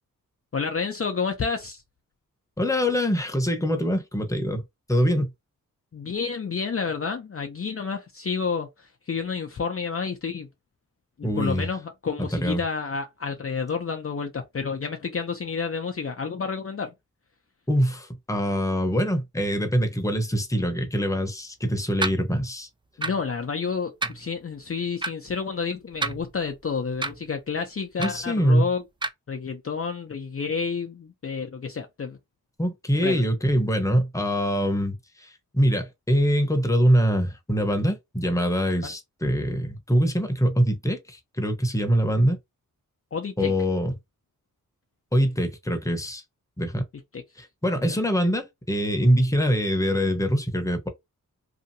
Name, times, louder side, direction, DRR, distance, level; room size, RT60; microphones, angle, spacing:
voice 1, 0.5-1.8 5.9-10.5 11.2-16.9 23.0-28.8 29.3-32.2 33.0-33.2 38.8-38.9 43.1-43.5 47.1-47.2 47.8-48.0, left 5 dB, 40° left, 0.6 m, -30 dB
voice 2, 2.6-4.6 4.9-5.3 11.2-11.7 12.2-12.6 17.7-22.7 28.0-28.7 32.6-42.4 43.4-43.9 45.1-46.2 46.6-46.8 47.4-50.9, equal, 10° left, 0.9 m, -24 dB
sound 1, 22.0-22.2 23.0-23.2 24.0-24.2 25.0-25.1 25.9-26.5 27.0-27.2 28.0-28.2 29.0-29.1, right 3 dB, 15° right, 0.4 m, -29 dB
2.8 x 2.5 x 2.7 m
cardioid pair, 50°, 35 cm